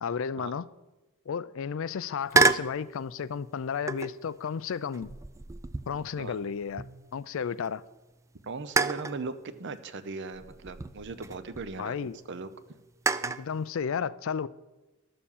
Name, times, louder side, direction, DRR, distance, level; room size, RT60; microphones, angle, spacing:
voice 1, 0.0-0.7 1.3-5.1 5.9-6.8 7.1-7.8 11.8-12.2 13.2-14.5, left 6 dB, 70° left, 0.4 m, -33 dB
sound 1, 2.3-2.8 3.9-4.3 4.9-7.3 7.6-7.7 8.8-9.2 10.3-11.7 13.1-13.5, right 3 dB, 15° right, 0.4 m, -29 dB
voice 2, 8.4-9.3 9.6-12.5, right 4 dB, 60° right, 0.8 m, -38 dB
12.5 x 6.9 x 7.2 m
head